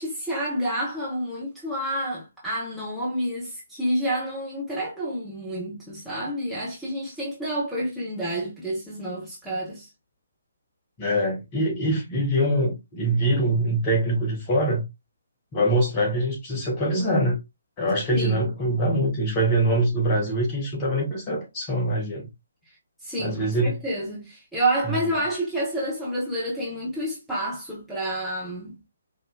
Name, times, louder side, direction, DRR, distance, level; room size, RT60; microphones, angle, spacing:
voice 1, 0.0-9.9 18.1-18.5 23.0-23.5 23.8-28.7, right 1 dB, ahead, 1.2 m, -29 dB
voice 2, 11.0-14.8 15.5-17.4 17.8-22.2 23.2-23.8 24.8-25.0, right 1 dB, 25° left, 1.5 m, -24 dB
5.3 x 2.8 x 2.3 m
figure-of-eight pair, 135°, 0 cm